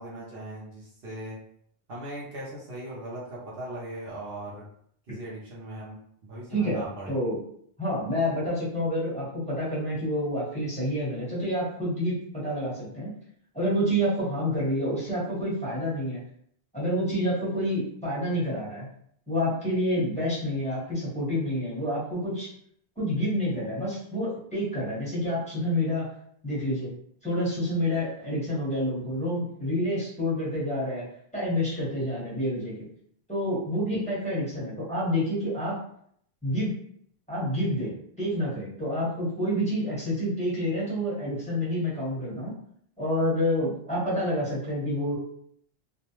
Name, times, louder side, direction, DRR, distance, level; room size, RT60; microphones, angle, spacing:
voice 1, 0.0-1.4 1.9-4.6 5.1-6.0 6.2-7.1, right 1 dB, 65° right, -5 dB, 0.8 m, -39 dB
voice 2, 6.5-7.4 7.8-13.1 13.5-16.2 16.7-18.9 19.3-22.5 23.0-26.1 26.4-26.9 27.2-31.0 31.3-32.8 33.3-35.8 36.4-36.8 37.3-42.5 43.0-45.2, equal, 5° left, -9 dB, 1.1 m, -28 dB
2.4 x 2.1 x 2.9 m, 0.66 s
omnidirectional pair, 1.0 m